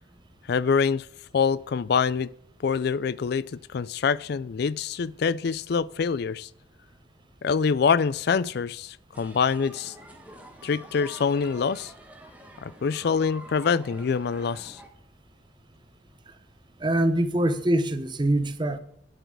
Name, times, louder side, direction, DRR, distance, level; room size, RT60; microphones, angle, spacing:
voice 1, 0.5-1.1 1.3-2.3 2.6-6.5 7.4-9.9 10.6-11.9 12.6-14.8, left 6 dB, 55° left, 0.4 m, -25 dB
sound 1, 9.1-14.9, right 1 dB, 10° right, 1.2 m, -47 dB
voice 2, 16.8-18.8, right 1 dB, 25° right, 0.7 m, -24 dB
9.3 x 8.0 x 4.6 m
head